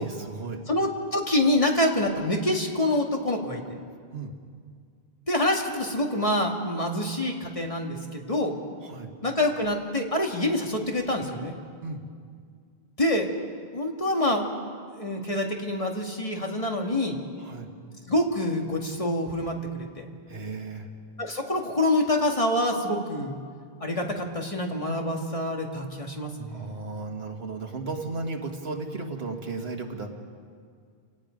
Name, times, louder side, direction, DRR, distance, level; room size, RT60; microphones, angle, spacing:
voice 1, 0.0-0.6 4.1-4.3 8.8-9.1 11.8-12.0 17.4-17.7 20.3-20.9 26.5-30.1, right 3 dB, 80° right, 3 dB, 2.0 m, -35 dB
voice 2, 0.7-3.8 5.3-8.5 9.2-11.5 13.0-13.3 13.7-14.4 14.9-17.2 18.1-20.1 21.2-23.3 23.8-26.8, left 1 dB, 35° left, 1 dB, 2.0 m, -26 dB
29.5 x 18.0 x 5.2 m, 2.1 s
omnidirectional pair, 1.0 m